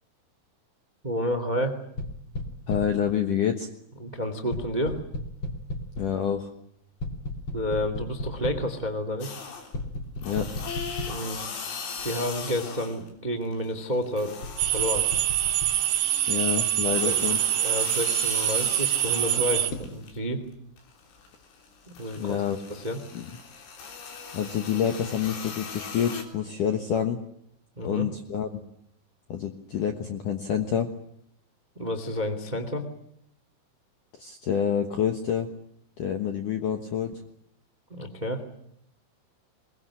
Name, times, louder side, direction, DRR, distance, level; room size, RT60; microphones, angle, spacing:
voice 1, 1.0-1.8 4.0-5.0 7.5-9.4 11.1-11.7 12.0-14.3 14.7-15.1 17.0-20.4 22.0-22.4 22.7-23.0 27.7-28.1 31.7-32.9 37.9-38.4, equal, 35° right, 9 dB, 0.7 m, -30 dB
sound 1, 2.0-3.1 4.5-6.2 7.0-8.7 9.7-11.4 12.0-12.1 14.4-15.8 19.7-19.9, left 1 dB, 35° left, 2.2 m, -35 dB
voice 2, 2.7-3.7 6.0-6.5 10.2-10.5 16.3-17.4 22.2-22.6 23.1-23.3 24.3-27.2 27.8-28.6 29.3-30.9 34.2-35.5 36.0-37.2, left 8 dB, 70° left, 6 dB, 2.0 m, -27 dB
sound 2, 9.2-9.8 10.2-13.1 13.4-20.2 20.5-26.2, left 6 dB, 90° left, 6.3 m, -39 dB
sound 3, 14.6-19.7, right 14 dB, 70° right, 3.1 m, -25 dB
22.5 x 22.0 x 10.0 m, 0.71 s
omnidirectional pair, 5.8 m